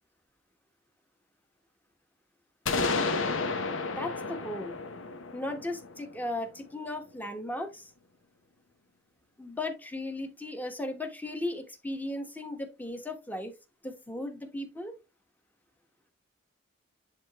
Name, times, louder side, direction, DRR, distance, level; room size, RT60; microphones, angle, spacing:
sound 1, 2.7-6.5, left 3 dB, 75° left, 0.9 m, -32 dB
voice 1, 4.0-4.8 5.3-7.9 9.4-13.5 13.8-14.9, left 1 dB, 10° left, 5 dB, 1.1 m, -36 dB
10.5 x 3.7 x 2.9 m, 0.27 s
head